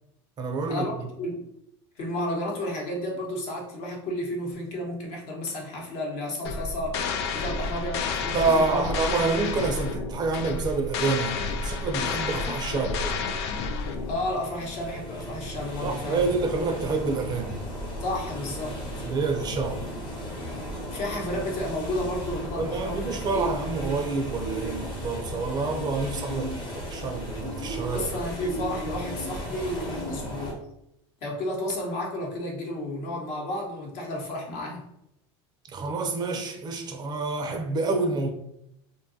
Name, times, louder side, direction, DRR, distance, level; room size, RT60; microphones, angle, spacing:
voice 1, 0.4-0.9 8.3-13.2 15.8-17.5 19.1-19.8 22.6-28.1 35.7-38.3, right 3 dB, 30° right, 0.5 m, -28 dB
voice 2, 2.0-7.0 7.3-8.9 14.0-16.3 18.0-18.8 20.9-23.5 27.9-30.6 31.2-34.8, left 1 dB, 55° left, 0.9 m, -32 dB
sound 1, 6.4-14.3, left 4 dB, 80° left, 0.4 m, -30 dB
sound 2, 13.3-30.5, equal, 35° left, 0.9 m, -35 dB
2.6 x 2.3 x 2.7 m
supercardioid pair, 120°, 14 cm